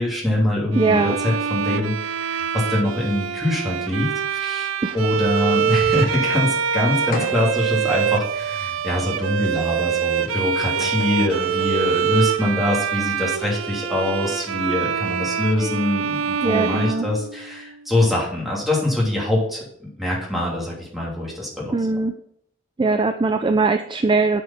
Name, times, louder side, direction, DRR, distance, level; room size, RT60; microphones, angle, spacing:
voice 1, 0.0-19.6 20.0-21.7, left 1 dB, ahead, -5 dB, 2.9 m, -24 dB
Bowed string instrument, 0.7-17.7, right 7 dB, 90° right, 0.5 m, -25 dB
voice 2, 0.8-1.2 4.8-5.0 16.4-17.1 21.7-22.1 22.8-24.4, right 3 dB, 25° right, 7 dB, 0.4 m, -20 dB
sound 1, 7.1-7.7 8.3-8.4 10.3-10.4 10.6-11.8, left 2 dB, 45° left, 1.3 m, -33 dB
8.4 x 5.3 x 5.8 m, 0.68 s
head